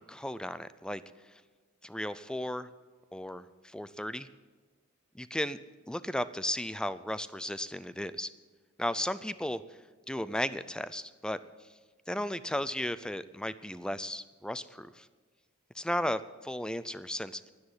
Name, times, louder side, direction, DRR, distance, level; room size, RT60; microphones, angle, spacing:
voice 1, 0.0-1.4 1.8-2.7 3.1-4.3 5.1-5.6 5.9-8.3 8.8-9.8 10.1-11.4 12.1-15.1 15.7-17.5, left 1 dB, 5° left, 15 dB, 0.4 m, -35 dB
10.5 x 9.7 x 9.7 m, 1.3 s
head